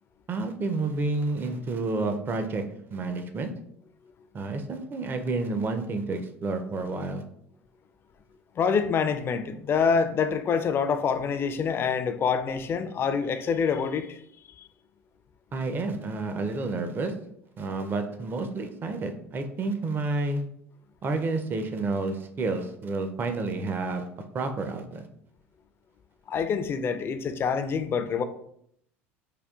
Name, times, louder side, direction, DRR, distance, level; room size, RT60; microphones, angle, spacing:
voice 1, 0.3-2.6 2.9-3.5 4.3-7.2 15.5-17.1 17.6-20.4 21.0-25.1, right 3 dB, 30° right, 0.4 m, -30 dB
voice 2, 8.6-14.2 14.6-14.7 26.3-28.2, left 6 dB, 35° left, 0.4 m, -26 dB
4.9 x 2.3 x 2.3 m
hypercardioid pair, 75°, 7 cm